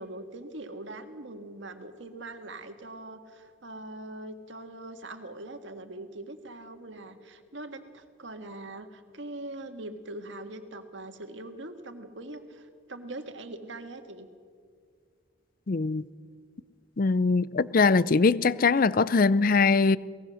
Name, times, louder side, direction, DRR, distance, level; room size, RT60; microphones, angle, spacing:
voice 1, 0.0-14.3, right 2 dB, 70° right, 1.7 m, -42 dB
voice 2, 15.7-16.0 17.0-20.0, left 4 dB, 45° left, 0.5 m, -22 dB
23.0 x 19.0 x 6.4 m
head